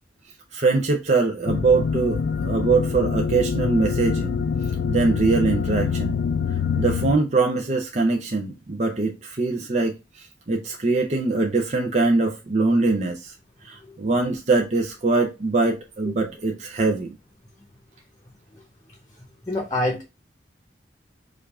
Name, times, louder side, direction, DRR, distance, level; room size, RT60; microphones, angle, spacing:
voice 1, 0.5-4.4 4.9-6.2 6.8-13.3 13.6-17.2, right 3 dB, 40° right, 0.6 m, -22 dB
sound 1, 1.5-7.1, left 6 dB, 75° left, 0.4 m, -25 dB
voice 2, 19.4-20.0, left 1 dB, 20° left, 0.9 m, -27 dB
5.0 x 2.5 x 3.4 m
head